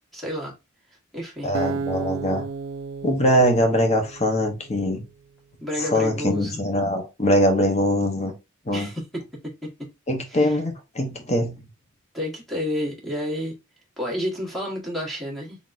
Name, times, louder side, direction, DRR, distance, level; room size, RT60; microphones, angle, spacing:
voice 1, 0.1-0.5 1.1-1.6 5.6-6.6 8.7-9.9 10.3-10.6 12.1-13.6 14.0-15.6, equal, ahead, 1.4 m, -30 dB
voice 2, 1.4-2.4 3.0-5.0 5.8-8.3 8.7-8.9 10.1-11.6, equal, 35° left, 1.0 m, -22 dB
Acoustic guitar, 1.5-4.8, right 4 dB, 80° right, 0.5 m, -33 dB
3.9 x 3.6 x 2.6 m
head